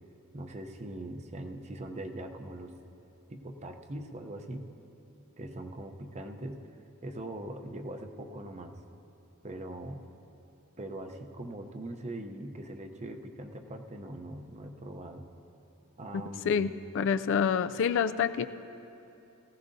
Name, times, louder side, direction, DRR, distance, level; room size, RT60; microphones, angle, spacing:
voice 1, 0.3-2.7 3.3-4.7 5.4-6.6 7.0-8.8 9.4-10.0 10.8-15.2 16.0-16.6, right 1 dB, 30° right, 6 dB, 0.7 m, -41 dB
voice 2, 16.5-18.5, left 7 dB, 60° left, 11 dB, 0.3 m, -27 dB
19.0 x 15.5 x 2.7 m, 2.9 s
head